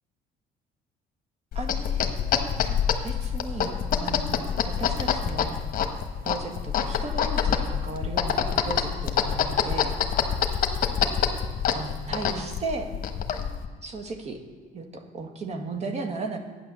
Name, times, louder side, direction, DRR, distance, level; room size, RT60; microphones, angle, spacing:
sound 1, 1.5-13.7, left 8 dB, 55° left, 1.3 m, -26 dB
voice 1, 1.6-2.2 3.0-3.7 4.0-5.6 6.2-10.0 11.7-12.9 13.8-14.4 14.7-16.4, right 3 dB, 40° right, 4 dB, 1.8 m, -35 dB
12.0 x 9.5 x 7.1 m, 1.5 s
cardioid pair, 110°, 17 cm